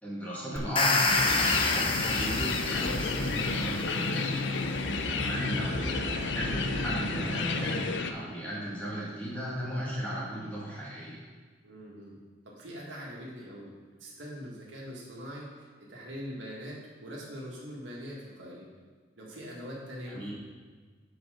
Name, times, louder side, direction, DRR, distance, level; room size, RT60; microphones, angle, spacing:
voice 1, 0.0-4.6 5.1-11.2 20.1-20.3, equal, 10° left, -7 dB, 1.9 m, -36 dB
sound 1, 0.6-3.7, left 3 dB, 30° left, 0.6 m, -28 dB
sound 2, 1.1-8.1, left 4 dB, 70° left, 0.5 m, -31 dB
sound 3, 1.1-8.1, right 1 dB, 55° right, 2.2 m, -38 dB
voice 2, 5.2-5.6 11.6-12.2 12.5-18.7 19.2-20.3, equal, 85° right, -4 dB, 1.8 m, -43 dB
7.2 x 5.0 x 5.0 m, 1.5 s
head